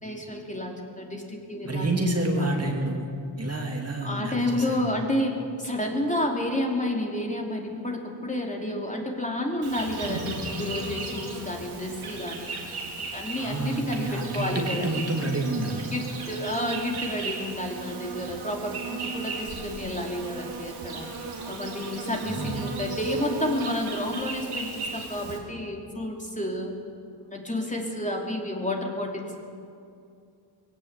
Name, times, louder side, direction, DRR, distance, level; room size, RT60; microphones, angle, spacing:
voice 1, 0.0-2.1 2.4-2.9 4.0-12.5 13.0-14.9 15.9-21.1 21.5-26.7 27.1-29.4, left 1 dB, 15° left, 0 dB, 3.0 m, -30 dB
voice 2, 1.6-3.1 3.4-4.8 13.4-15.8 22.2-22.6, right 1 dB, 30° right, 1 dB, 2.6 m, -28 dB
Insect, 9.6-25.4, right 4 dB, 80° right, 3.9 m, -36 dB
21.5 x 17.0 x 8.2 m, 2.5 s
wide cardioid pair, 120°, 49 cm